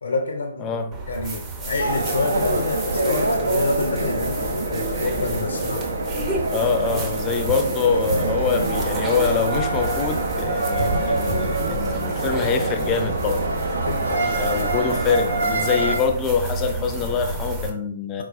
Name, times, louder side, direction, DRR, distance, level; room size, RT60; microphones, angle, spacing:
voice 1, 0.0-0.8 1.1-5.9 13.7-14.4, left 3 dB, 70° left, 0.6 m, -27 dB
voice 2, 0.6-1.0 6.5-13.4 14.3-18.2, left 5 dB, 25° left, 0.5 m, -24 dB
sound 1, 0.9-17.7, right 2 dB, 20° right, 0.8 m, -32 dB
sound 2, 1.8-16.0, right 2 dB, 70° right, 0.8 m, -25 dB
4.5 x 3.8 x 2.5 m
figure-of-eight pair, 125°, 0 cm